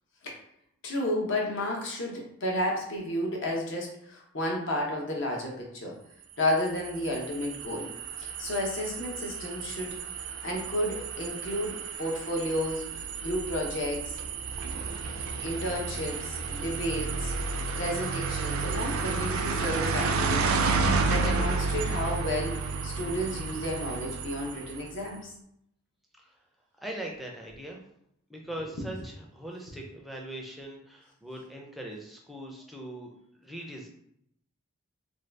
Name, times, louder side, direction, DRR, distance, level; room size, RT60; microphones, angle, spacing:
voice 1, 0.8-6.0 6.4-7.9 8.2-10.0 10.4-12.8 13.2-14.1 15.4-17.3 17.8-25.3, left 1 dB, 60° left, 0 dB, 0.7 m, -32 dB
sound 1, 6.5-25.0, right 4 dB, 80° right, 0.4 m, -31 dB
voice 2, 26.8-27.8 28.3-33.1 33.4-33.9, right 1 dB, ahead, -1 dB, 0.4 m, -40 dB
2.6 x 2.3 x 3.3 m, 0.74 s
head